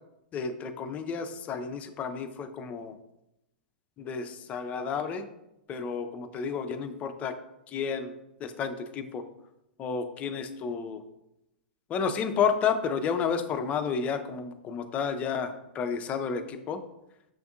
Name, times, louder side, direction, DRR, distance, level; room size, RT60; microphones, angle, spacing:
voice 1, 0.3-3.0 4.0-5.3 5.7-7.4 7.7-9.2 9.8-11.0 11.9-16.8, left 6 dB, 25° left, 8 dB, 0.4 m, -31 dB
6.3 x 2.6 x 2.4 m, 0.89 s
figure-of-eight pair, 100°, 5 cm